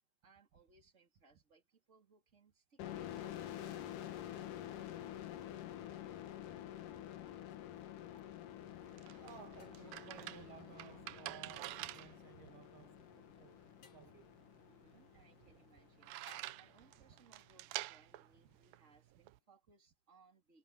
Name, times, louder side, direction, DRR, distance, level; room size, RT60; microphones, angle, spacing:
voice 1, 0.2-4.1 14.7-20.6, right 4 dB, 20° right, 3.4 m, -69 dB
sound 1, 2.8-16.2, left 11 dB, 65° left, 2.6 m, -49 dB
voice 2, 6.9-7.3 8.1-8.3 8.8-13.1 13.4-13.6 13.9-14.3, right 8 dB, 60° right, 2.9 m, -57 dB
sound 2, 7.5-7.6 9.6-10.1 11.9-12.3 13.8-14.2 16.3-16.9, left 8 dB, 40° left, 1.9 m, -65 dB
sound 3, 8.5-19.4, right 17 dB, 80° right, 2.2 m, -49 dB
omnidirectional pair, 4.5 m